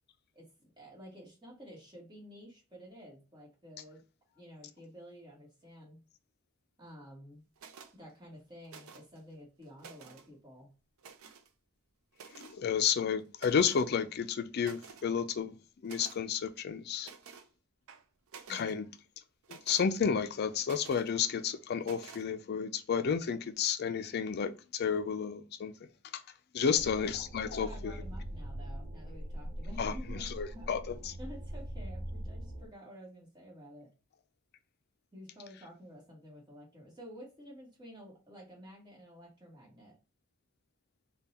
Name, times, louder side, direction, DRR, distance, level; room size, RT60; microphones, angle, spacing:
voice 1, 0.3-4.0 4.3-6.0 6.8-7.5 7.9-10.7 18.5-18.8 26.6-30.8 31.2-33.9 35.1-40.0, equal, 20° right, 1.3 m, -51 dB
sound 1, 7.6-7.9 8.7-9.2 9.6-10.3 11.0-11.5 12.1-12.6 13.4-13.9 14.3-14.4 14.6-15.1 15.8-16.2 17.0-17.5 17.9-18.7 19.4-19.9 20.6-21.1 21.8-22.3, right 6 dB, 90° right, 0.5 m, -51 dB
voice 2, 12.3-15.5 15.8-17.1 18.5-18.9 19.5-25.7 26.1-26.2 26.5-27.9 29.8-30.9, left 7 dB, 50° left, 0.4 m, -31 dB
sound 2, 26.7-32.7, equal, 40° right, 0.6 m, -42 dB
3.6 x 2.2 x 4.1 m
head